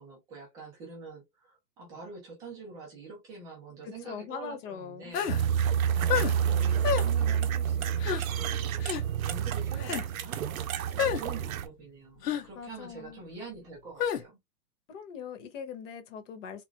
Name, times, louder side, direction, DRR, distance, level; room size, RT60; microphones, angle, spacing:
voice 1, 0.0-5.4 5.9-10.4 10.9-14.4, right 4 dB, 10° right, 0.4 m, -46 dB
voice 2, 3.8-5.2 12.5-13.2 14.9-16.6, left 7 dB, 50° left, 1.1 m, -41 dB
sound 1, 5.1-5.4 6.1-6.3 6.8-7.1 8.0-8.2 8.8-9.0 9.8-10.0 11.0-11.2 12.2-12.4 14.0-14.2, left 9 dB, 75° left, 1.0 m, -29 dB
sound 2, 5.3-11.7, right 8 dB, 55° right, 0.7 m, -28 dB
3.7 x 3.1 x 2.2 m
hypercardioid pair, 150°, 49 cm